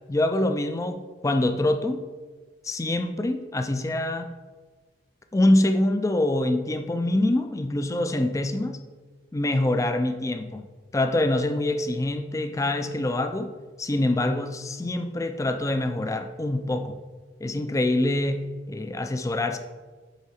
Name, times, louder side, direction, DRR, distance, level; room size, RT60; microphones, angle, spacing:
voice 1, 0.1-2.0 2.6-4.3 5.3-8.8 9.3-10.7 10.9-13.5 13.8-17.0 17.4-19.6, left 1 dB, 15° left, 7 dB, 0.4 m, -25 dB
8.1 x 3.8 x 4.2 m, 1.4 s
head